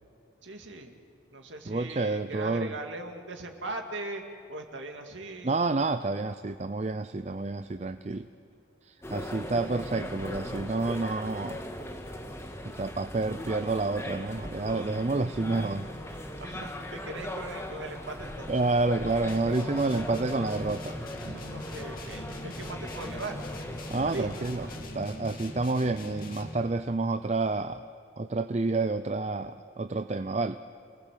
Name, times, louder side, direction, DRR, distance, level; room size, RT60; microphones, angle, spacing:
voice 1, 0.4-1.0 1.3-4.2 4.5-5.6 16.1-18.5 21.2-23.4 24.0-24.3 24.7-24.9, right 2 dB, 85° right, 3 dB, 2.3 m, -40 dB
voice 2, 1.7-2.7 5.4-8.3 8.8-11.6 12.6-15.9 18.5-21.0 23.9-24.7 24.9-27.9 28.2-30.6, right 3 dB, 35° right, 10 dB, 0.5 m, -29 dB
sound 1, 9.0-24.8, left 1 dB, 15° left, 1.7 m, -39 dB
sound 2, 19.3-26.8, left 1 dB, 45° left, 2.6 m, -41 dB
28.5 x 19.0 x 7.6 m, 2.4 s
head